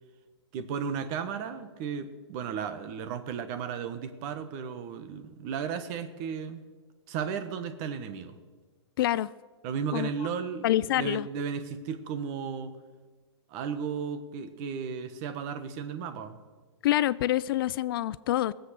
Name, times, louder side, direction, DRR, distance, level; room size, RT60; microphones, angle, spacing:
voice 1, 0.5-6.6 7.1-8.4 9.6-12.7 13.5-16.4, right 6 dB, 40° right, 11 dB, 1.3 m, -34 dB
voice 2, 9.0-9.3 9.9-10.1 10.6-11.3 16.8-18.5, left 14 dB, 50° left, 18 dB, 0.4 m, -26 dB
18.5 x 7.9 x 6.6 m, 1.4 s
hypercardioid pair, 145°, 15 cm